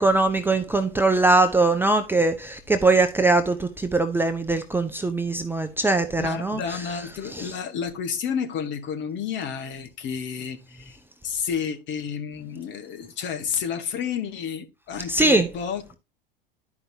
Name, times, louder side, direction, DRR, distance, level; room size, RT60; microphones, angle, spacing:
voice 1, 0.0-6.8 7.3-7.5 15.1-15.5, right 2 dB, 5° right, 0.7 m, -21 dB
voice 2, 6.2-11.0 11.2-16.0, left 7 dB, 40° left, 1.7 m, -31 dB
12.0 x 5.2 x 2.8 m
figure-of-eight pair, 80°, 29 cm